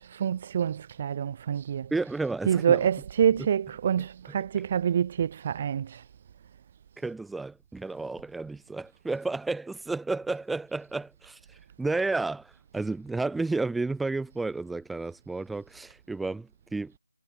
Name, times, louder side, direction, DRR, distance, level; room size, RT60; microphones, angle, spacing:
voice 1, 0.0-1.9 2.5-6.0, right 8 dB, 25° right, 1.0 m, -26 dB
voice 2, 1.9-2.9 3.4-3.5 4.3-4.7 7.0-11.4 11.8-16.9, right 3 dB, ahead, 1.3 m, -32 dB
figure-of-eight pair, 155°, 0 cm